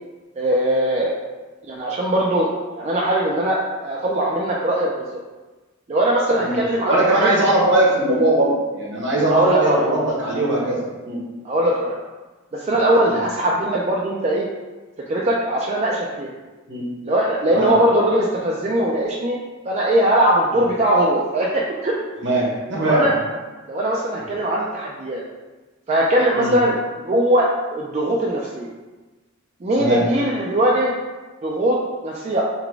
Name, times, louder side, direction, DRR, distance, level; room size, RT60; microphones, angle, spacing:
voice 1, 0.4-1.2 1.7-5.1 5.9-7.3 9.3-9.8 11.4-12.0 12.5-14.4 15.1-16.3 17.0-19.4 19.7-21.9 22.8-23.1 23.7-25.2 25.9-26.7 27.0-27.5 27.7-28.7 29.6-30.9 31.4-31.8 32.0-32.4, right 1 dB, 35° right, -4 dB, 0.4 m, -20 dB
voice 2, 6.4-11.2 13.1-13.2 16.7-16.9 17.5-17.7 20.5-20.6 22.2-23.2 26.3-26.5 29.8-30.0, right 1 dB, 60° right, -4 dB, 1.1 m, -20 dB
4.0 x 2.2 x 4.5 m, 1.2 s
head